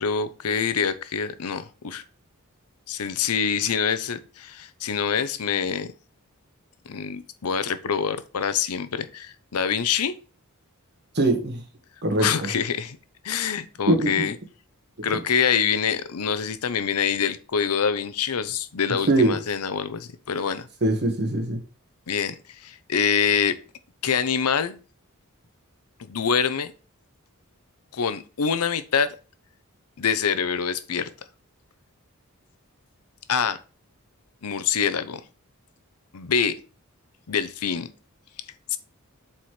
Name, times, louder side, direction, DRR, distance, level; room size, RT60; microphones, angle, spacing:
voice 1, 0.0-2.0 2.9-5.9 6.9-10.1 12.2-13.0 13.2-14.4 15.0-20.7 22.1-23.6 24.0-24.8 26.0-26.7 27.9-29.2 30.0-31.1 33.3-33.6 34.4-35.2 36.1-36.5 37.3-37.9 38.7-38.8, left 7 dB, 85° left, 12 dB, 0.7 m, -25 dB
voice 2, 11.1-11.6 12.0-12.5 13.9-14.3 19.1-19.3 20.8-21.6, right 2 dB, 50° right, 5 dB, 1.5 m, -22 dB
7.5 x 4.3 x 3.2 m, 0.34 s
head